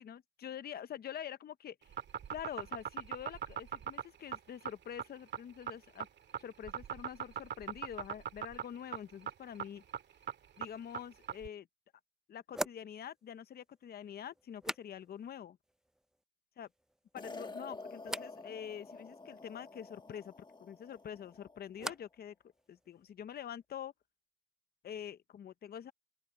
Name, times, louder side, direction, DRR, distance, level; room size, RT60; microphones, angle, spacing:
voice 1, 0.0-1.9 2.3-6.1 6.4-9.8 10.6-11.7 12.3-15.6 16.6-16.7 17.1-22.3 22.7-23.9 24.8-25.9, left 9 dB, 50° left, 0.8 m, -46 dB
sound 1, 1.8-11.5, right 8 dB, 60° right, 2.0 m, -40 dB
sound 2, 12.5-15.4 15.6-16.2 16.6-17.2 18.0-18.4 20.8-22.3 22.5-23.1, right 1 dB, 5° right, 0.5 m, -45 dB
sound 3, 17.2-21.6, left 3 dB, 20° left, 1.4 m, -49 dB
open air
cardioid pair, 90°, 20 cm